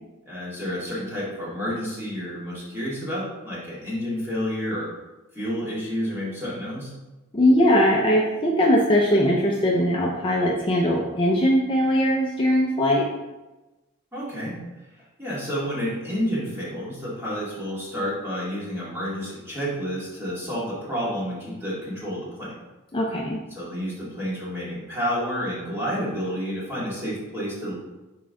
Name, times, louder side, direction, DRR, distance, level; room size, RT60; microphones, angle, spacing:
voice 1, 0.3-4.9 5.3-6.9 14.1-14.6 15.2-22.6 23.5-27.7, equal, 10° right, -8 dB, 2.1 m, -30 dB
voice 2, 7.3-13.1 22.9-23.4, equal, 25° left, -2 dB, 0.5 m, -20 dB
6.1 x 4.6 x 3.7 m, 1.1 s
head